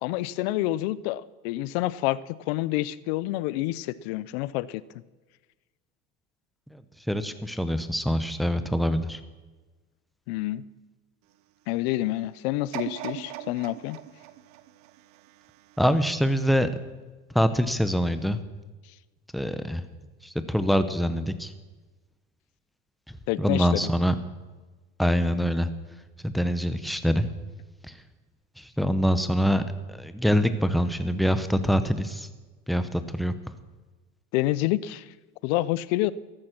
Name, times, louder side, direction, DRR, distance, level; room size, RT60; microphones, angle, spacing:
voice 1, 0.0-4.8 10.3-10.6 11.7-14.0 23.3-23.9 34.3-35.0 35.4-36.1, left 16 dB, 80° left, 19 dB, 0.7 m, -28 dB
voice 2, 7.1-9.2 15.8-16.7 17.3-18.4 19.3-19.8 20.2-21.5 23.1-24.1 25.0-25.7 26.2-27.3 27.9-28.0 28.6-29.6 29.9-32.3 32.7-33.3, equal, ahead, 10 dB, 0.8 m, -25 dB
sound 1, 12.7-15.8 16.3-16.4, right 12 dB, 60° right, 1.1 m, -39 dB
14.0 x 13.0 x 6.0 m, 1.2 s
cardioid pair, 145°, 31 cm